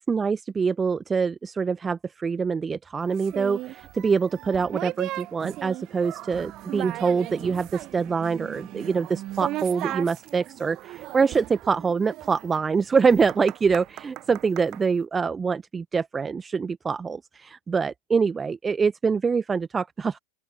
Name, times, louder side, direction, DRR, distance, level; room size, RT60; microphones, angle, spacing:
voice 1, 0.0-20.2, right 5 dB, 15° right, 1.0 m, -25 dB
sound 1, 3.2-14.8, right 16 dB, 35° right, 1.0 m, -37 dB
open air
figure-of-eight pair, 90°, 0 cm